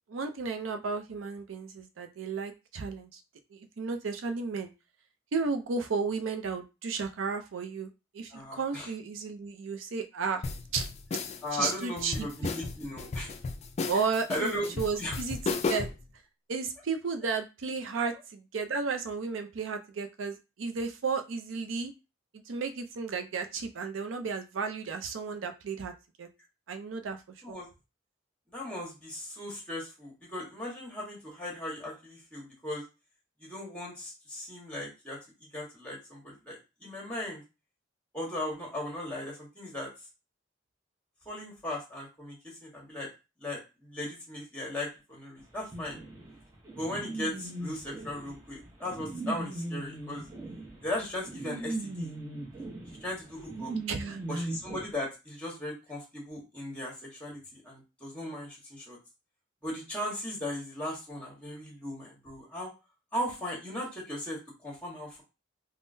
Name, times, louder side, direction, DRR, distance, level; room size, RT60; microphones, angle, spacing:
voice 1, 0.1-3.2 3.5-4.7 5.3-10.4 10.7-10.9 11.5-12.3 13.9-15.9 16.5-21.9 22.5-25.9 26.2-26.3 26.7-27.2 27.5-27.6 53.9-54.2, right 5 dB, 90° right, 7 dB, 0.5 m, -33 dB
voice 2, 8.3-8.9 11.4-13.3 14.3-15.2 27.4-27.7 28.5-32.8 33.4-35.2 35.5-37.4 38.1-39.9 41.2-42.4 42.6-43.1 43.4-46.0 46.7-50.2 50.8-52.1 53.0-53.7 54.3-59.0 59.6-62.7 63.1-65.2, left 1 dB, 5° left, -3 dB, 1.2 m, -37 dB
sound 1, 10.4-16.0, left 4 dB, 35° left, 0.3 m, -34 dB
sound 2, 45.7-54.8, right 2 dB, 15° right, 0.7 m, -38 dB
3.6 x 2.0 x 2.6 m, 0.28 s
head